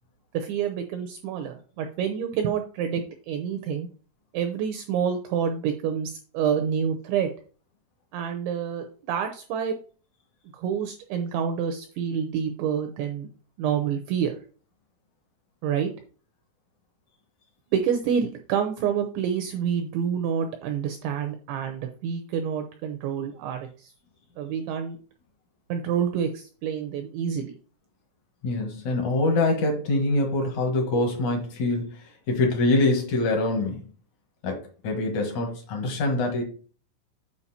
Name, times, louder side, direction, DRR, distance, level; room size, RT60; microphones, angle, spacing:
voice 1, 0.3-3.9 4.3-7.3 8.1-9.8 10.5-13.3 13.6-14.4 15.6-15.9 17.7-23.9 24.4-25.0 25.7-27.5, right 8 dB, 80° right, 5 dB, 2.6 m, -28 dB
voice 2, 28.4-33.8 34.4-34.6 34.8-36.4, left 2 dB, 70° left, 2 dB, 1.8 m, -24 dB
8.5 x 5.1 x 4.2 m, 0.40 s
omnidirectional pair, 6.0 m